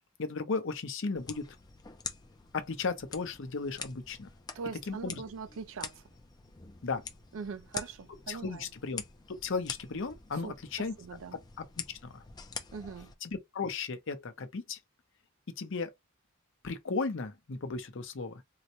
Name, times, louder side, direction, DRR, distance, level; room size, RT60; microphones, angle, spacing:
voice 1, 0.2-1.5 2.5-4.3 4.9-5.2 6.8-7.0 8.3-9.0 9.3-10.9 11.6-11.7 12.0-12.2 13.2-14.8 15.6-15.9 16.6-18.3, left 4 dB, 60° left, 0.7 m, -35 dB
sound 1, 1.2-13.2, left 5 dB, 20° left, 0.4 m, -46 dB
voice 2, 4.5-6.0 7.3-8.7 10.4-11.4 12.7-13.1, right 5 dB, 65° right, 0.4 m, -42 dB
3.8 x 2.1 x 2.9 m
head